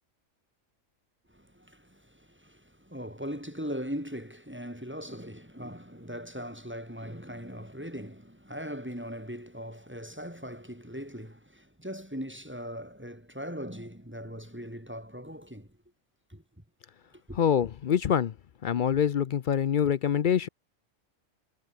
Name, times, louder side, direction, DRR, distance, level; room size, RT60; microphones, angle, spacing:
voice 1, 1.3-15.7 16.3-16.6 17.1-17.4, equal, 10° right, 4.4 m, -40 dB
voice 2, 17.4-18.3 18.6-20.5, left 8 dB, 55° left, 0.5 m, -25 dB
omnidirectional pair, 1.4 m